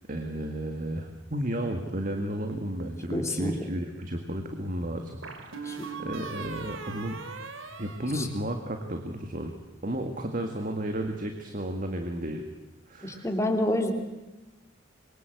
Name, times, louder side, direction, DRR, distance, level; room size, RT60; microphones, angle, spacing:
voice 1, 0.1-7.2 7.8-9.6 9.8-12.4 12.9-13.3, right 1 dB, 45° right, 5 dB, 2.0 m, -33 dB
sound 1, 2.5-3.3 5.2-8.8, right 4 dB, 90° right, 2.8 m, -40 dB
voice 2, 3.1-3.6 5.6-5.9 8.1-8.3 13.0-13.9, left 1 dB, 15° left, 3 dB, 3.0 m, -28 dB
26.5 x 23.0 x 8.0 m, 1.1 s
head